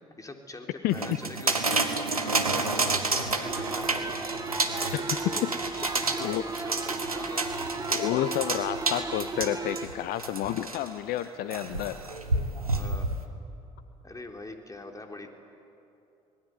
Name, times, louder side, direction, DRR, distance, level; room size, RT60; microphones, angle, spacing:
voice 1, 0.2-4.3 4.8-5.5 5.9-7.5 12.8-13.1 14.0-15.3, left 2 dB, 20° left, 3 dB, 3.5 m, -43 dB
sound 1, 0.9-10.9 11.5-13.2, right 3 dB, 90° right, 1.1 m, -30 dB
sound 2, 3.5-9.9, right 3 dB, 20° right, 1.4 m, -36 dB
voice 2, 7.9-12.0, left 13 dB, 55° left, 12 dB, 0.8 m, -30 dB
27.0 x 19.5 x 9.6 m, 2.7 s
figure-of-eight pair, 50°, 18 cm